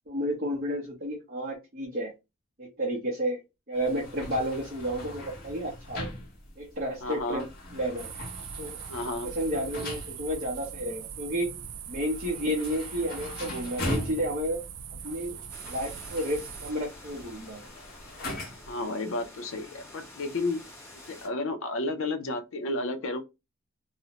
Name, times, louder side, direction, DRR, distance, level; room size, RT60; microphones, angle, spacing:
voice 1, 0.1-2.1 2.6-3.4 3.7-6.1 6.6-7.4 7.7-8.1 8.6-8.8 9.2-11.6 11.9-14.6 15.0-15.4 15.6-17.6, equal, 40° right, 0.6 m, -31 dB
sound 1, 3.7-18.8, left 1 dB, 45° left, 0.8 m, -41 dB
voice 2, 7.0-7.5 8.9-9.3 18.7-20.6 21.1-23.2, left 2 dB, 65° left, 0.5 m, -32 dB
sound 2, 8.0-16.7, right 8 dB, 80° right, 0.4 m, -42 dB
sound 3, 15.5-21.3, left 1 dB, 10° left, 0.7 m, -49 dB
2.5 x 2.0 x 2.8 m
head